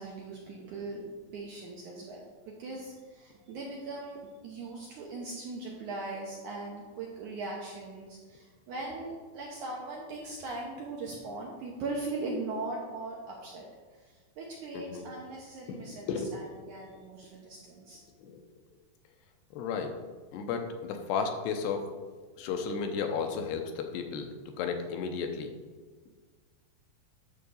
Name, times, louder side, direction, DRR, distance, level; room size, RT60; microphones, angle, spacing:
voice 1, 0.0-13.6 13.9-18.0, right 2 dB, 70° right, -2 dB, 1.9 m, -40 dB
voice 2, 14.7-15.1 15.7-16.3 16.6-16.7 18.2-18.4 19.5-19.9 20.3-21.9 22.4-25.5, left 5 dB, 85° left, 5 dB, 2.9 m, -34 dB
11.0 x 3.7 x 7.0 m, 1.5 s
omnidirectional pair, 4.7 m